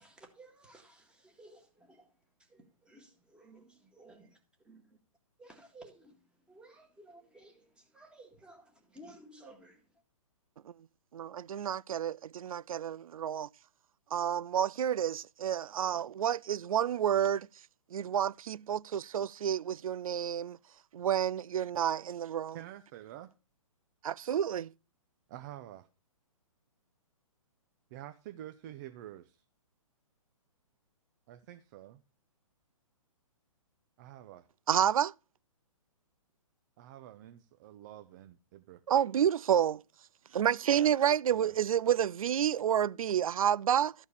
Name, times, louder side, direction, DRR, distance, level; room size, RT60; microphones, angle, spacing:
voice 1, 0.0-5.0 5.4-10.0, right 1 dB, 5° right, 1.8 m, -56 dB
voice 2, 11.1-13.5 14.1-17.5 17.9-20.6 20.9-22.6 24.0-24.7 34.7-35.1 38.9-39.8 40.3-43.9, right 9 dB, 75° right, 0.4 m, -29 dB
voice 3, 22.5-23.3 25.3-25.9 27.9-29.4 31.3-32.0 34.0-34.5 36.8-38.8 41.3-41.6 43.2-43.3, right 12 dB, 35° right, 0.6 m, -48 dB
13.0 x 4.5 x 6.9 m
hypercardioid pair, 145°, 18 cm